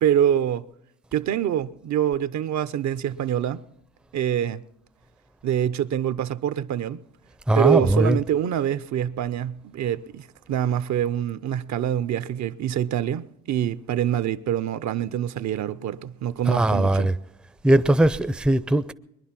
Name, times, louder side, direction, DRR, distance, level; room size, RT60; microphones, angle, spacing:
voice 1, 0.0-0.7 1.1-3.6 4.1-4.6 5.4-7.0 7.6-17.1, right 10 dB, 65° right, 0.7 m, -25 dB
voice 2, 7.5-8.2 16.5-17.2 17.6-18.9, right 1 dB, 5° right, 0.5 m, -20 dB
21.5 x 11.0 x 5.9 m
cardioid pair, 90°, 30 cm